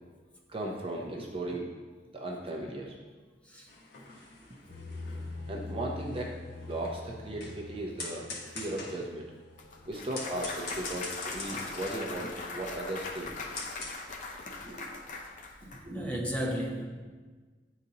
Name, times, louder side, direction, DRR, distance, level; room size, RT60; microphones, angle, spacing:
voice 1, 0.5-1.7 2.1-3.1 4.7-8.3 8.5-9.3 9.9-13.4 14.6-15.0 15.6-16.1, right 1 dB, 30° right, 0 dB, 0.6 m, -37 dB
sound 1, 3.7-13.9, left 3 dB, 60° left, 1.3 m, -44 dB
sound 2, 4.7-12.6, left 3 dB, 80° left, 1.1 m, -45 dB
Clapping / Cheering / Applause, 9.6-15.8, left 3 dB, 45° left, 0.6 m, -41 dB
voice 2, 15.9-16.8, equal, 5° left, -2 dB, 0.8 m, -33 dB
9.7 x 3.9 x 2.8 m, 1.4 s
head